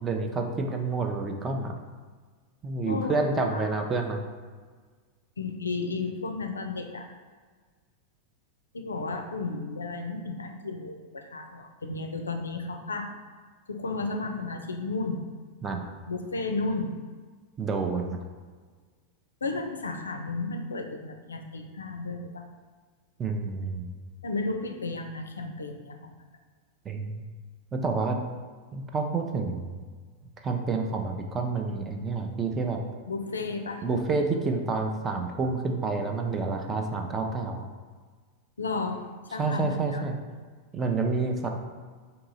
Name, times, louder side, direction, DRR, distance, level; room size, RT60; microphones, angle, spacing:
voice 1, 0.0-1.7 2.6-4.2 15.6-15.9 17.6-18.2 23.2-23.9 26.9-27.2 27.7-28.2 28.7-29.7 30.4-32.8 33.8-37.6 39.4-40.2 40.7-41.5, right 3 dB, 20° right, 3 dB, 0.5 m, -29 dB
voice 2, 2.8-3.7 5.4-7.1 8.7-13.1 13.7-15.2 16.1-16.9 19.4-22.4 24.2-26.1 33.1-33.9 38.6-40.1, left 3 dB, 75° left, 4 dB, 0.4 m, -33 dB
3.7 x 2.8 x 3.9 m, 1.5 s
figure-of-eight pair, 90°, 0 cm